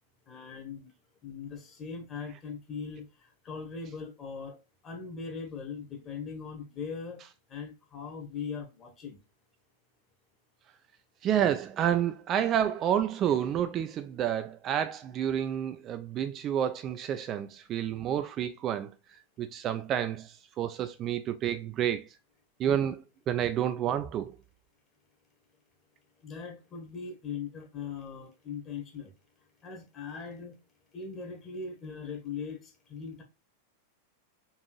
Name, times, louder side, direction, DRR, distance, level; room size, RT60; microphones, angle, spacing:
voice 1, 0.3-0.9 1.2-7.2 7.5-9.2 26.2-29.1 29.6-30.5 30.9-33.2, left 5 dB, 25° left, 1.4 m, -40 dB
voice 2, 11.2-18.9 19.4-22.0 22.6-24.3, right 10 dB, 30° right, 0.4 m, -29 dB
4.0 x 3.5 x 3.1 m
figure-of-eight pair, 90°, 0 cm